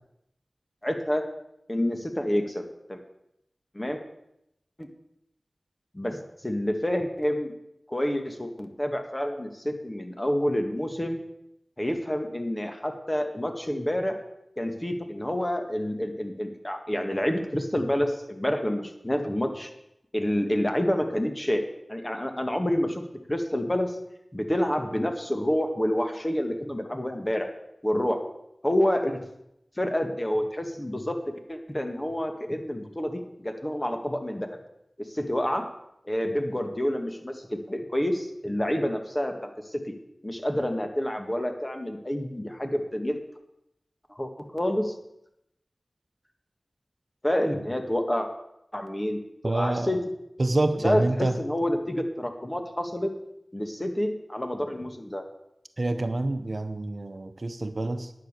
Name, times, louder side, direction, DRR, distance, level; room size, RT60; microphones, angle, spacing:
voice 1, 0.8-1.2 1.7-2.6 2.9-3.0 3.7-4.0 4.8-4.9 5.9-6.2 6.4-7.5 7.9-11.2 11.8-14.2 14.6-19.7 20.1-21.6 21.9-23.0 23.3-24.0 24.3-27.5 27.8-28.2 28.6-29.3 29.8-31.2 31.5-34.5 35.0-35.7 36.0-39.8 40.2-43.2 44.1-45.0 47.2-48.3 48.7-49.2 49.4-50.0 50.8-53.1 53.5-55.2, equal, 25° left, 5 dB, 1.8 m, -28 dB
voice 2, 49.4-50.0 50.4-51.4 55.8-58.1, right 2 dB, 60° right, 8 dB, 0.9 m, -27 dB
10.5 x 9.5 x 6.7 m, 0.82 s
wide cardioid pair, 55°, 0 cm